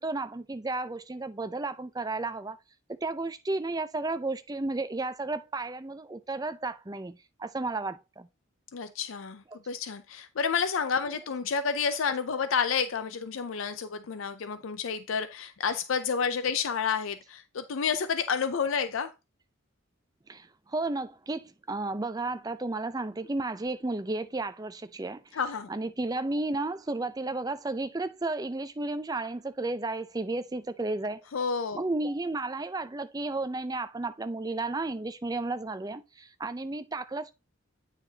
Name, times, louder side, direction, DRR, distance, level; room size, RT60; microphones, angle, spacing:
voice 1, 0.0-2.6 3.0-8.3 9.5-9.6 20.3-31.2 31.7-37.3, right 2 dB, 20° right, 0.5 m, -33 dB
voice 2, 8.7-19.1 25.3-25.7 31.3-31.8, left 6 dB, 75° left, 0.5 m, -30 dB
8.9 x 5.7 x 2.8 m
head